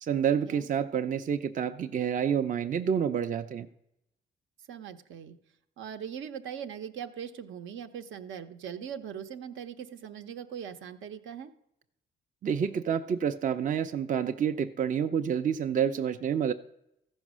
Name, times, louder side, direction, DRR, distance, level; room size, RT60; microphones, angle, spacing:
voice 1, 0.0-3.7 12.4-16.5, right 8 dB, 40° right, 8 dB, 0.5 m, -28 dB
voice 2, 4.7-5.4 5.8-11.5, right 8 dB, 75° right, 7 dB, 0.8 m, -40 dB
14.0 x 5.4 x 6.2 m, 0.82 s
cardioid pair, 90°, 20 cm